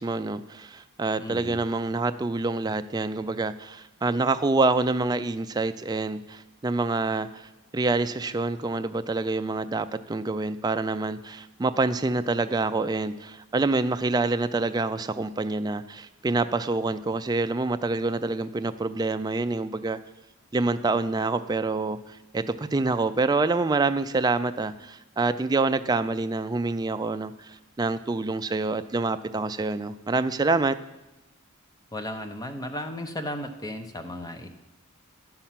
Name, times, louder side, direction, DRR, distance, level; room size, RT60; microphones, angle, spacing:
voice 1, 0.0-20.0 20.5-30.8, right 3 dB, 20° right, 10 dB, 0.3 m, -27 dB
voice 2, 1.2-1.6 31.9-34.5, left 1 dB, 15° left, 7 dB, 0.7 m, -35 dB
10.5 x 5.7 x 7.3 m, 1.0 s
head